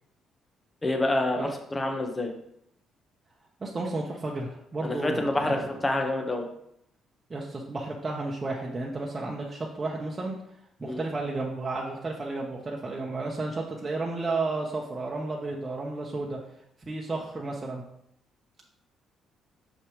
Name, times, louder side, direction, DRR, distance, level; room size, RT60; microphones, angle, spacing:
voice 1, 0.8-2.3 4.8-6.5 10.8-11.0, left 1 dB, 25° left, 3 dB, 1.3 m, -27 dB
voice 2, 3.6-5.6 7.3-10.4 10.8-16.4 16.8-17.8, right 3 dB, 30° right, -2 dB, 1.1 m, -32 dB
6.5 x 5.7 x 3.2 m, 0.75 s
supercardioid pair, 60°, 0 cm